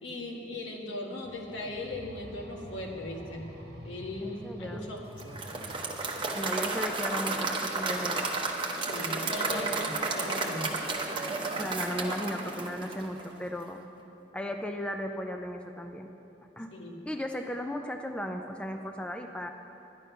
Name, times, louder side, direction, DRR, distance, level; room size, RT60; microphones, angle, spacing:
voice 1, 0.0-3.5 3.8-5.4 8.9-10.7 16.7-17.0, left 2 dB, 80° left, 0 dB, 1.6 m, -38 dB
sound 1, 1.2-6.3, equal, 55° right, 1.2 m, -47 dB
voice 2, 4.2-4.8 6.3-8.3 9.5-9.9 11.6-13.8 14.3-16.1 16.6-16.7 17.1-19.5, equal, 5° left, 4 dB, 0.4 m, -36 dB
Applause / Crowd, 5.2-13.4, right 3 dB, 25° right, 0.9 m, -32 dB
11.0 x 10.5 x 5.6 m, 2.9 s
head